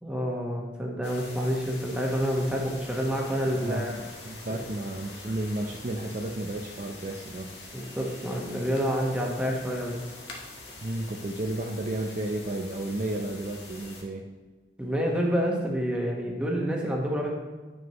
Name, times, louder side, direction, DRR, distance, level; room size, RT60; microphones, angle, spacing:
voice 1, 0.0-3.9 4.5-4.6 7.7-10.0 14.8-17.3, equal, 5° right, -2 dB, 1.2 m, -28 dB
sound 1, 1.0-14.0, left 2 dB, 85° left, 1.5 m, -44 dB
voice 2, 3.6-7.5 10.8-14.2, right 1 dB, 45° right, 2 dB, 0.5 m, -32 dB
9.2 x 6.2 x 3.0 m, 1.3 s
head